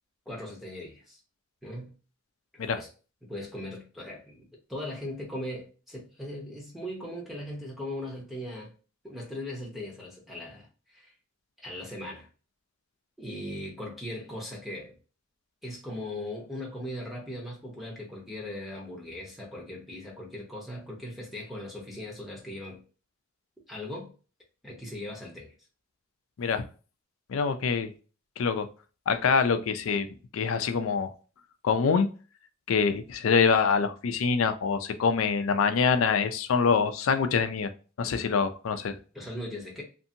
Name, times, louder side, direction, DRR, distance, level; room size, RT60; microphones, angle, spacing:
voice 1, 0.3-1.2 1.6-1.9 2.6-2.9 3.2-8.7 9.0-10.7 10.9-11.1 11.6-12.3 13.2-15.0 15.6-22.8 23.7-24.1 24.6-25.5 39.1-39.8, left 1 dB, ahead, 0.8 m, -39 dB
voice 2, 27.3-27.9 28.4-28.7 29.1-30.1 30.3-31.1 31.6-32.1 32.7-37.7 38.0-39.0, left 5 dB, 80° left, 0.4 m, -25 dB
2.6 x 2.6 x 2.6 m
head